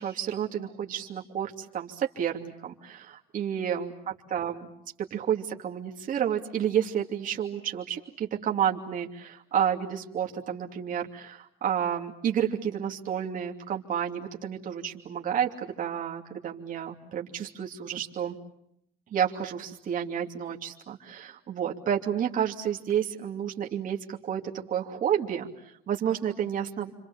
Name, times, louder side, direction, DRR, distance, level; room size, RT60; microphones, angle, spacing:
voice 1, 0.0-4.7 5.0-18.4 19.1-24.4 24.7-26.9, right 9 dB, 50° right, 0 dB, 2.8 m, -30 dB
29.0 x 26.0 x 7.3 m, 0.76 s
cardioid pair, 110°, 17 cm